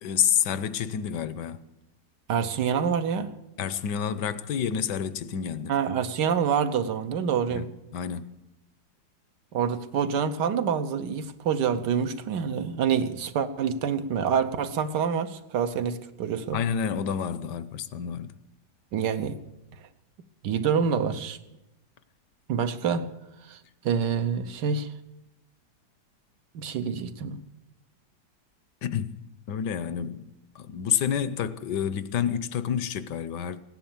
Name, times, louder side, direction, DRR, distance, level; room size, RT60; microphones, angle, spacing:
voice 1, 0.0-1.6 3.6-5.7 7.5-8.4 16.5-18.3 28.8-29.2 29.5-30.3 30.5-33.6, left 8 dB, 75° left, 1.3 m, -29 dB
voice 2, 2.3-3.3 5.7-7.7 9.5-16.6 18.9-19.4 20.4-21.4 22.5-23.1 23.5-23.6 23.8-24.9 26.5-27.4, right 7 dB, 70° right, 1.4 m, -27 dB
17.0 x 10.5 x 7.2 m
omnidirectional pair, 2.0 m